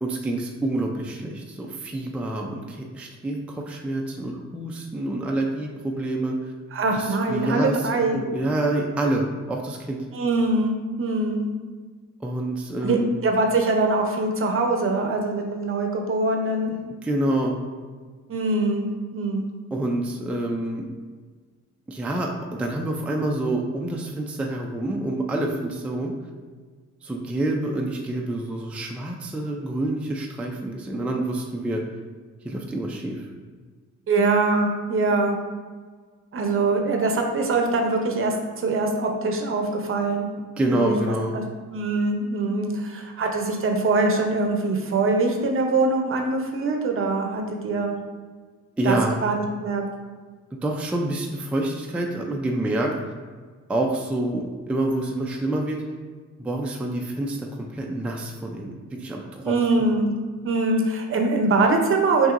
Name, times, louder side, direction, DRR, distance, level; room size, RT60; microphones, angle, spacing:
voice 1, 0.0-6.5 7.0-7.8 8.1-10.0 12.2-13.2 17.0-17.6 19.7-20.9 21.9-26.1 27.0-31.8 32.4-33.3 40.6-41.3 48.8-49.2 50.5-52.9 53.7-55.8 56.4-59.5, right 1 dB, 5° right, 0 dB, 0.4 m, -27 dB
voice 2, 6.7-8.2 10.1-11.5 12.8-16.7 18.3-19.4 34.1-35.4 36.3-40.3 40.7-40.9 41.3-41.4 41.7-48.0 48.8-49.8 59.4-60.2 60.4-62.3, right 3 dB, 45° right, 3 dB, 0.7 m, -23 dB
5.7 x 2.7 x 2.5 m, 1.5 s
cardioid pair, 90°, 30 cm